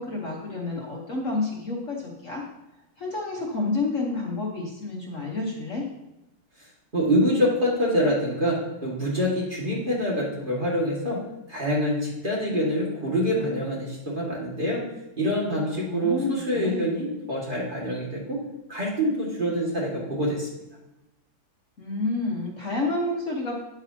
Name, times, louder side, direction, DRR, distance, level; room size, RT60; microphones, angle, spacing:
voice 1, 0.0-2.4 3.0-5.8 15.7-17.0 21.8-23.6, left 3 dB, 45° left, -2 dB, 1.4 m, -29 dB
voice 2, 6.9-11.2 11.5-14.8 15.2-18.4 18.7-20.5, equal, 25° right, -4 dB, 2.0 m, -25 dB
9.3 x 8.8 x 2.8 m, 0.94 s
omnidirectional pair, 2.0 m